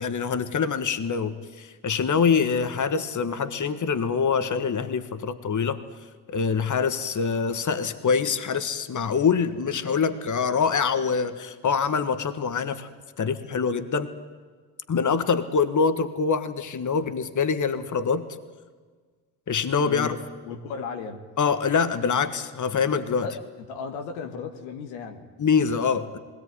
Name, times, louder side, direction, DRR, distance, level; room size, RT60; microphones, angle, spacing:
voice 1, 0.0-5.8 6.3-12.9 13.2-14.1 14.9-18.3 19.5-20.1 21.4-23.3 25.4-26.2, left 6 dB, 40° left, 11 dB, 1.7 m, -25 dB
voice 2, 19.8-20.2 20.4-21.3 23.2-23.4 23.7-25.3, left 5 dB, 90° left, 5 dB, 1.9 m, -35 dB
20.5 x 17.5 x 9.6 m, 1.5 s
hypercardioid pair, 60°, 47 cm